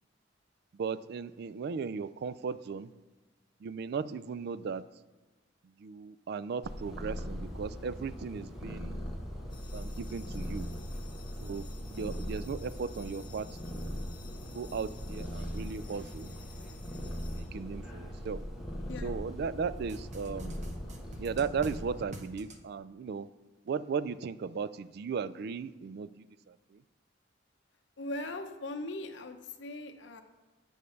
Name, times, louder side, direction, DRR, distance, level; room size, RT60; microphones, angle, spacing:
voice 1, 0.7-2.9 3.6-4.8 5.8-9.0 9.7-10.7 11.4-14.1 14.5-16.3 16.9-18.4 19.0-20.6 21.2-23.3 23.7-26.8, right 5 dB, 55° right, 16 dB, 0.3 m, -37 dB
Purr, 6.6-22.0, equal, ahead, 1.1 m, -40 dB
sound 1, 9.5-18.2, left 6 dB, 25° left, 1.1 m, -56 dB
sound 2, 19.9-21.8 22.1-22.6, right 1 dB, 40° right, 0.9 m, -46 dB
voice 2, 28.0-30.2, left 2 dB, 65° left, 6 dB, 0.8 m, -39 dB
8.0 x 5.1 x 5.7 m, 1.2 s
head